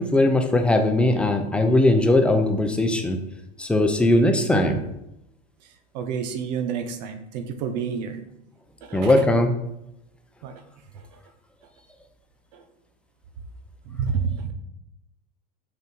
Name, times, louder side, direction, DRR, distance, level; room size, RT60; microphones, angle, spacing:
voice 1, 0.0-3.2 3.6-4.8 8.9-9.6, left 1 dB, 5° left, 5 dB, 0.6 m, -19 dB
voice 2, 5.9-8.2 8.8-9.2 10.4-10.6 10.9-11.0 12.5-12.6 13.9-14.5, right 6 dB, 80° right, 9 dB, 1.2 m, -29 dB
6.7 x 6.2 x 4.5 m, 0.86 s
supercardioid pair, 160°, 21 cm